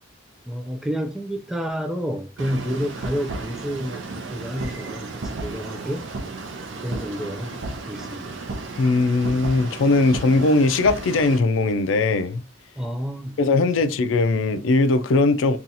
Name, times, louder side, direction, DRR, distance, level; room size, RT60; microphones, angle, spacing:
voice 1, 0.5-6.1 6.8-8.4 12.8-13.4 13.8-14.0, equal, ahead, 0.3 m, -30 dB
sound 1, 2.4-11.4, right 3 dB, 75° right, 0.5 m, -34 dB
voice 2, 8.8-12.4 13.4-15.6, left 3 dB, 85° left, 0.4 m, -19 dB
2.7 x 2.4 x 3.9 m
head